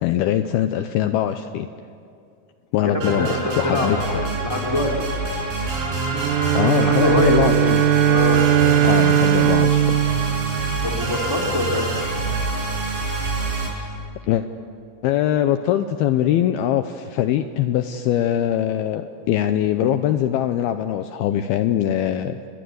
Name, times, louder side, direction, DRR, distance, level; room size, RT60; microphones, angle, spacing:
voice 1, 0.0-1.7 2.7-4.2 6.5-7.8 8.8-10.0 14.3-14.5 15.0-22.4, left 11 dB, 80° left, 8 dB, 2.4 m, -22 dB
voice 2, 2.8-5.0 6.7-7.7 8.0-8.4 10.8-11.9, left 1 dB, 5° right, 0 dB, 2.2 m, -24 dB
sound 1, 3.0-13.7, right 2 dB, 55° right, 7.2 m, -26 dB
Bowed string instrument, 6.1-11.4, right 10 dB, 85° right, 1.9 m, -19 dB
29.5 x 23.0 x 8.0 m, 2.4 s
omnidirectional pair, 5.1 m